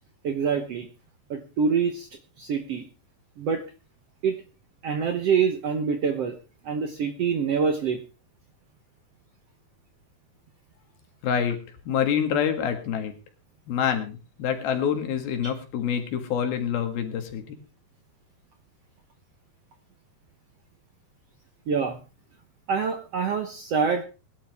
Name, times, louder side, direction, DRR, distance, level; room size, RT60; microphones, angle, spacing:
voice 1, 0.2-0.9 1.3-2.1 2.4-2.8 3.4-3.6 4.2-4.4 4.8-6.3 6.6-8.0 21.7-22.0 22.7-24.0, right 6 dB, 65° right, 7 dB, 1.6 m, -25 dB
voice 2, 11.2-13.1 13.7-17.6, left 8 dB, 85° left, 6 dB, 3.9 m, -27 dB
21.0 x 11.5 x 3.5 m, 0.32 s
omnidirectional pair, 4.2 m